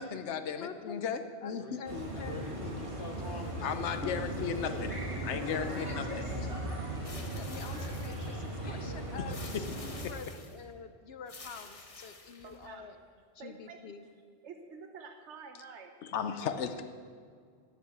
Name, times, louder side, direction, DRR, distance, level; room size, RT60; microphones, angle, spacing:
voice 1, 0.0-1.8 3.6-5.0 5.2-6.5 16.0-16.8, left 7 dB, 90° left, 9 dB, 1.1 m, -35 dB
voice 2, 0.6-1.1 1.4-2.5 3.9-4.2 5.3-6.3 7.3-13.0 13.3-14.0, left 6 dB, 65° left, 9 dB, 0.9 m, -46 dB
voice 3, 1.5-4.9 6.7-7.3 8.6-8.9, left 3 dB, 50° left, 3 dB, 1.2 m, -46 dB
sound 1, 1.9-10.1, right 1 dB, 30° right, 1.9 m, -38 dB
sound 2, 7.0-8.5 9.3-10.6 11.3-12.7, left 3 dB, 35° left, 1.0 m, -50 dB
voice 4, 12.4-13.0 13.4-14.1 14.4-15.9 16.5-16.6, right 5 dB, 90° right, 5 dB, 1.2 m, -49 dB
11.0 x 8.8 x 8.0 m, 2.1 s
omnidirectional pair, 1.1 m